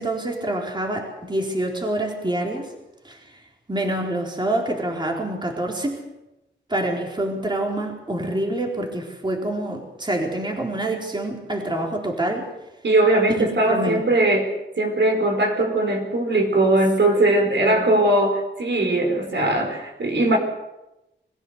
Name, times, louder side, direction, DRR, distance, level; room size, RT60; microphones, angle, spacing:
voice 1, 0.0-2.7 3.0-3.2 3.7-6.0 6.7-12.5 13.3-14.0 17.6-17.9, right 1 dB, 25° right, 0 dB, 4.1 m, -26 dB
voice 2, 12.8-20.4, right 1 dB, 65° right, 2 dB, 4.6 m, -20 dB
23.0 x 15.5 x 8.1 m, 0.95 s
wide cardioid pair, 95°, 20 cm